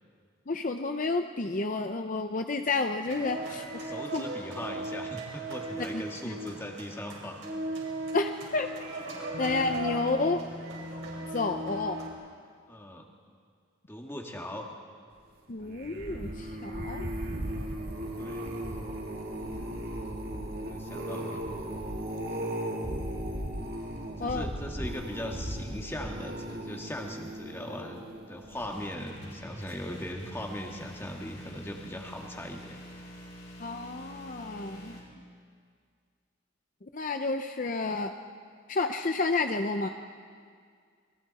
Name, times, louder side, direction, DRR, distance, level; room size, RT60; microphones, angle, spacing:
voice 1, 0.5-3.6 4.1-4.2 8.1-8.7 9.4-10.4 11.3-12.0 15.5-17.1 24.2-24.4 33.6-35.0 36.9-38.1 38.7-39.9, left 3 dB, 40° left, 6 dB, 0.7 m, -30 dB
sound 1, 3.0-12.1, right 1 dB, 65° right, 5.2 m, -37 dB
voice 2, 3.7-7.4 12.7-13.1 13.9-14.7 18.2-18.5 20.5-21.4 24.2-32.8, left 1 dB, 10° left, 1 dB, 1.9 m, -39 dB
sound 2, 15.6-29.0 29.5-29.8 30.1-30.2, right 1 dB, 50° right, 2.5 m, -37 dB
sound 3, 28.5-35.0, equal, 60° left, 6.4 m, -47 dB
28.0 x 22.0 x 4.2 m, 2.1 s
head